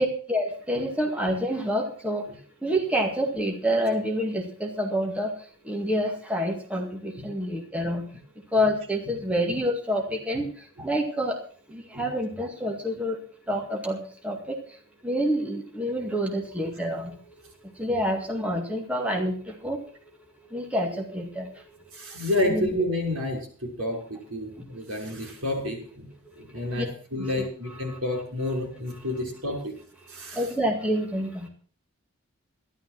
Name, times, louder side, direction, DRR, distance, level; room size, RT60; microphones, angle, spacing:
voice 1, 0.0-2.2 2.6-5.3 5.6-8.1 8.5-11.4 11.7-13.2 13.5-14.6 15.0-17.2 17.8-19.8 20.5-21.5 22.5-22.7 24.6-24.7 26.6-26.9 27.2-27.3 27.9-28.0 30.3-31.5, equal, 5° right, 1 dB, 2.1 m, -27 dB
voice 2, 21.9-26.1 26.3-29.7 30.1-30.5, left 1 dB, 80° right, 2 dB, 6.1 m, -30 dB
13.0 x 12.0 x 6.0 m, 0.43 s
head